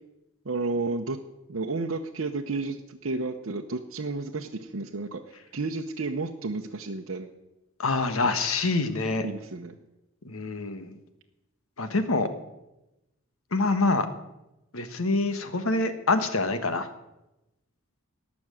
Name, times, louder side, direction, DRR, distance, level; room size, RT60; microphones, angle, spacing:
voice 1, 0.4-1.2 1.5-5.2 5.5-7.3 8.2-8.3 9.2-9.7, right 3 dB, 75° right, 1 dB, 0.8 m, -31 dB
voice 2, 7.8-9.3 10.2-11.0 11.8-12.3 13.5-14.1 14.7-16.9, left 3 dB, 85° left, 9 dB, 1.3 m, -26 dB
18.5 x 6.1 x 9.0 m, 0.96 s
head